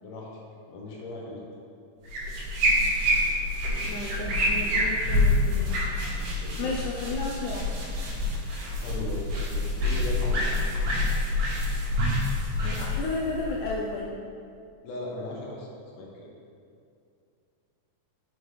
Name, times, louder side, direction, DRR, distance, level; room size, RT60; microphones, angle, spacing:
voice 1, 0.7-1.4 2.2-2.3 6.4-6.7 8.8-10.7 14.8-15.7 15.9-16.3, left 2 dB, 70° left, -3 dB, 1.8 m, -38 dB
sound 1, 2.1-14.0, left 1 dB, 90° right, 2.9 m, -27 dB
voice 2, 3.9-5.8 6.6-7.8 12.6-14.2, left 3 dB, 85° left, -3 dB, 1.8 m, -33 dB
5.9 x 5.2 x 3.2 m, 2.4 s
omnidirectional pair, 3.9 m